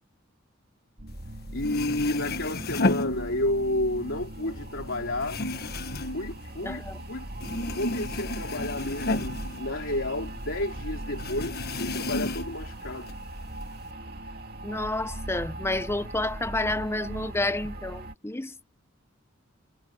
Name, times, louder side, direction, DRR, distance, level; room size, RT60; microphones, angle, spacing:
sound 1, 1.0-18.1, right 1 dB, 55° right, 2.1 m, -39 dB
sound 2, 1.3-1.4 1.6-3.8 4.1-7.1 7.4-10.4 10.6-10.7 11.2-12.7 13.1-13.8, left 2 dB, 55° left, 1.4 m, -32 dB
voice 1, 1.5-5.4 6.0-13.1, left 1 dB, 75° left, 3.7 m, -31 dB
voice 2, 6.6-7.0 14.6-18.7, left 2 dB, 15° left, 0.9 m, -30 dB
head